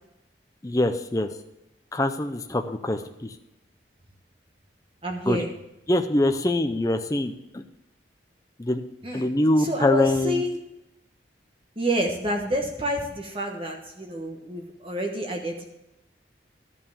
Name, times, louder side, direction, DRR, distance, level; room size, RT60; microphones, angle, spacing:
voice 1, 0.6-1.3 1.9-3.3 5.3-5.4 5.9-7.6 8.6-8.8 9.1-10.4, left 1 dB, 20° left, 6 dB, 0.5 m, -24 dB
voice 2, 5.0-5.5 9.0-9.3 9.6-10.6 11.8-15.6, equal, 30° right, 2 dB, 1.2 m, -28 dB
13.0 x 5.7 x 7.1 m, 0.88 s
head